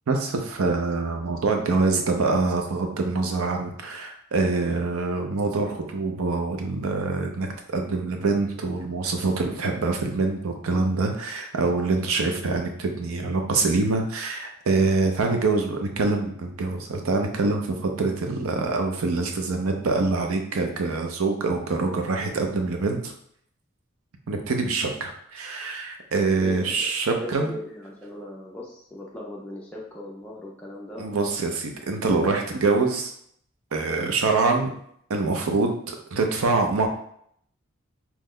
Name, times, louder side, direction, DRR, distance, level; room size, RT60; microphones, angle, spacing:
voice 1, 0.1-23.1 24.3-27.5 31.0-33.1 33.7-34.7 35.1-36.9, right 3 dB, 90° right, 3 dB, 0.5 m, -25 dB
voice 2, 26.4-26.9 27.2-31.4, left 1 dB, 5° left, -4 dB, 0.3 m, -38 dB
3.0 x 2.1 x 3.6 m, 0.68 s
head